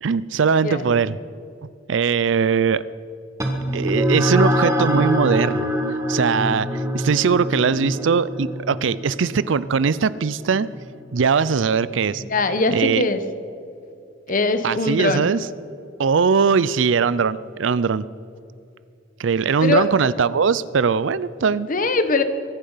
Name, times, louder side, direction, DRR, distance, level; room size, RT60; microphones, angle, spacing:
voice 1, 0.0-1.2 1.6-2.8 3.7-5.7 6.1-10.7 11.1-12.2 12.7-13.0 14.6-15.5 16.0-18.0 19.2-21.7, right 5 dB, 70° right, 18 dB, 0.5 m, -20 dB
sound 1, 3.4-12.2, equal, 15° right, 1.6 m, -25 dB
voice 2, 12.3-13.2 14.3-15.3 19.6-19.9 21.7-22.2, left 3 dB, 45° left, 10 dB, 1.0 m, -21 dB
23.5 x 10.0 x 5.7 m, 2.5 s
head